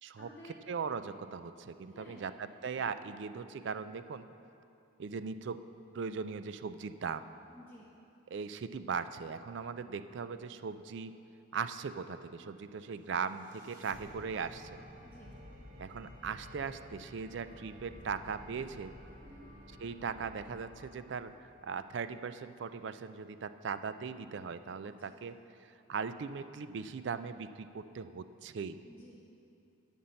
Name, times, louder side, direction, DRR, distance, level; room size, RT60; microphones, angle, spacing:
voice 1, 0.1-0.6 1.9-2.3 7.5-7.9 15.0-15.3 19.2-19.5 24.8-25.2 28.8-29.2, left 1 dB, 10° left, -6 dB, 0.9 m, -54 dB
voice 2, 0.7-4.3 5.0-5.6 5.9-7.2 8.3-11.1 11.5-14.8 15.8-18.9 19.8-25.4 25.9-28.8, right 5 dB, 60° right, 12 dB, 0.4 m, -39 dB
sound 1, 12.9-22.0, equal, 40° right, 1.1 m, -53 dB
11.0 x 5.4 x 7.6 m, 2.6 s
head